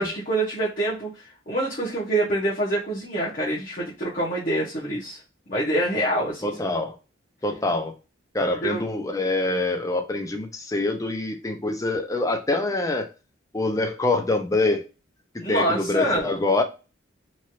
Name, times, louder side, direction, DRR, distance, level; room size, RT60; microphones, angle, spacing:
voice 1, 0.0-5.2 5.5-6.6 8.6-8.9 15.4-16.3, right 1 dB, 45° left, -6 dB, 0.9 m, -26 dB
voice 2, 6.4-6.9 7.4-7.9 8.3-13.1 13.5-14.8 15.3-16.6, left 2 dB, 15° left, 6 dB, 0.5 m, -25 dB
3.1 x 2.4 x 2.7 m, 0.31 s
head